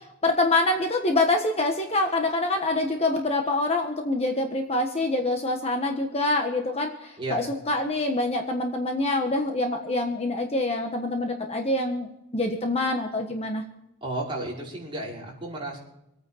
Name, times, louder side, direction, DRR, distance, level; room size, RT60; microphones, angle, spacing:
voice 1, 0.2-12.1 12.3-13.6, left 2 dB, 30° left, 3 dB, 1.3 m, -25 dB
voice 2, 7.2-7.5 14.0-15.8, right 2 dB, 25° right, -5 dB, 5.6 m, -33 dB
26.5 x 9.3 x 4.3 m, 0.85 s
head